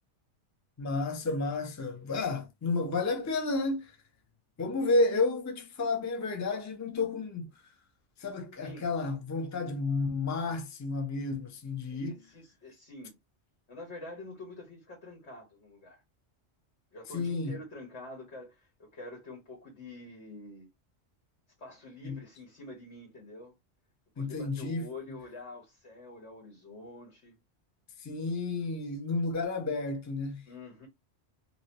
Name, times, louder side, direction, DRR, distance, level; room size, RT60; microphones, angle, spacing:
voice 1, 0.8-3.9 4.6-7.5 8.2-12.2 17.1-17.6 22.0-22.2 24.2-24.9 28.0-30.4, left 3 dB, 20° left, 0.5 m, -31 dB
voice 2, 11.8-13.2 13.7-16.0 16.9-20.7 21.6-23.5 24.2-27.4 30.5-30.9, left 2 dB, 75° left, 1.7 m, -47 dB
2.8 x 2.8 x 2.8 m
omnidirectional pair, 1.2 m